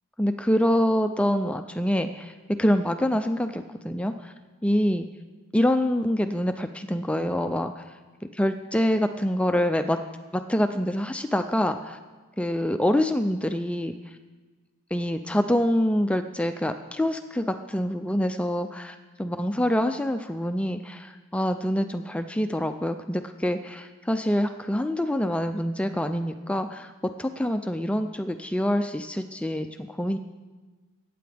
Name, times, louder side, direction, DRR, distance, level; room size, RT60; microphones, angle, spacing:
voice 1, 0.2-2.3 2.6-4.3 4.6-5.1 5.5-7.7 8.3-10.0 10.3-12.0 12.4-13.9 14.9-26.9 27.2-30.2, equal, 5° left, 8 dB, 0.3 m, -26 dB
22.0 x 9.3 x 3.4 m, 1.3 s
head